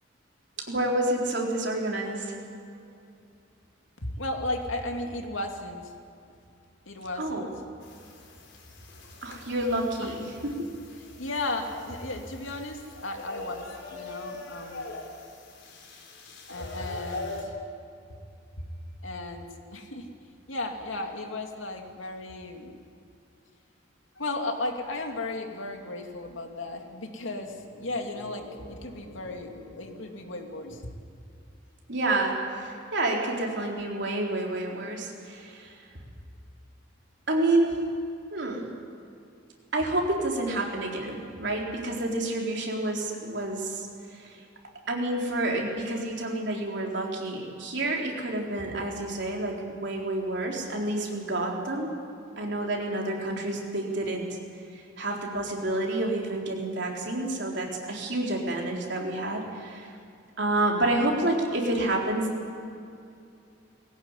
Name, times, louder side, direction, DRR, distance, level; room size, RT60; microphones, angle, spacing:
voice 1, 0.6-2.3 7.2-7.5 9.2-10.7 31.9-35.8 37.3-37.8 38.3-38.7 39.7-44.4 44.9-51.9 52.4-54.4 54.8-59.9 60.4-62.3, right 2 dB, 60° right, -1 dB, 4.1 m, -29 dB
voice 2, 4.2-5.9 6.9-7.5 10.0-10.2 11.2-13.7 13.9-14.9 16.5-17.5 18.6-18.7 19.0-19.5 19.7-20.1 20.5-22.7 24.2-30.9, left 2 dB, 90° left, 3 dB, 2.7 m, -35 dB
sound 1, 7.8-17.4, left 2 dB, 70° left, 4.4 m, -43 dB
20.5 x 17.0 x 9.8 m, 2.5 s
head